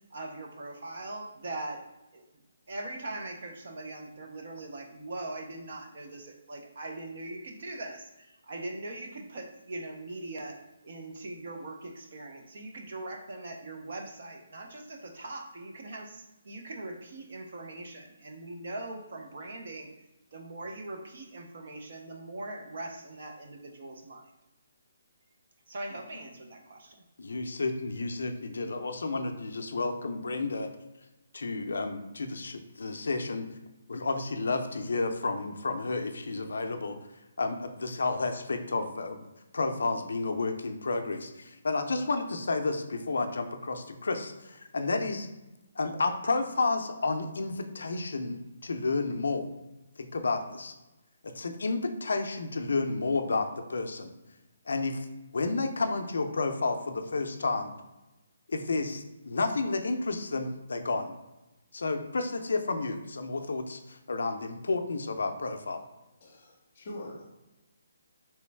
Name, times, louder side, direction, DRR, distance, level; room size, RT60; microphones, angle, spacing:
voice 1, 0.1-1.8 2.1-2.2 2.7-10.6 10.8-19.9 20.3-24.2 25.7-27.0, right 2 dB, 40° right, 3 dB, 0.5 m, -41 dB
voice 2, 27.2-30.7 31.3-33.5 33.9-37.0 37.4-39.2 39.5-45.3 45.8-49.5 50.0-50.7 51.2-54.1 54.7-55.1 55.3-57.7 58.5-61.1 61.7-65.8, left 3 dB, 70° left, 6 dB, 0.4 m, -31 dB
voice 3, 66.2-67.2, left 1 dB, 25° left, -1 dB, 0.7 m, -43 dB
3.3 x 3.0 x 3.2 m, 0.99 s
hypercardioid pair, 180°, 0 cm